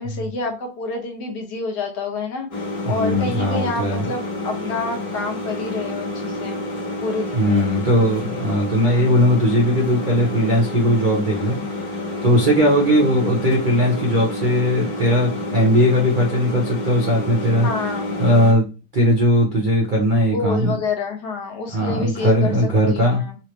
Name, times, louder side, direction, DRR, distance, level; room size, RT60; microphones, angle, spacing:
voice 1, 0.0-6.6 7.0-7.7 17.6-18.1 20.3-22.5 22.9-23.4, left 3 dB, 65° left, 2 dB, 1.4 m, -28 dB
sound 1, 2.5-18.5, left 2 dB, 30° left, 1.4 m, -29 dB
voice 2, 2.9-4.0 7.3-11.6 11.8-17.7 18.2-18.7 18.9-20.8 21.7-23.2, equal, 55° right, -1 dB, 0.5 m, -18 dB
3.3 x 3.1 x 3.0 m, 0.31 s
omnidirectional pair, 2.0 m